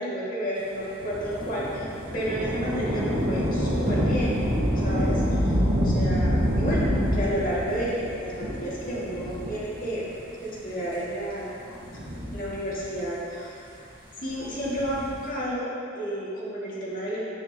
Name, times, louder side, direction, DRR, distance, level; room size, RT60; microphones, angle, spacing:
voice 1, 0.0-4.4 4.7-10.0 10.4-11.8 12.3-13.6 14.2-17.2, equal, 45° left, -7 dB, 2.2 m, -31 dB
Thunder / Rain, 1.0-10.0 10.7-10.8 11.7-13.0 14.5-15.3, equal, 50° right, 1.7 m, -27 dB
11.0 x 9.0 x 3.0 m, 2.5 s
head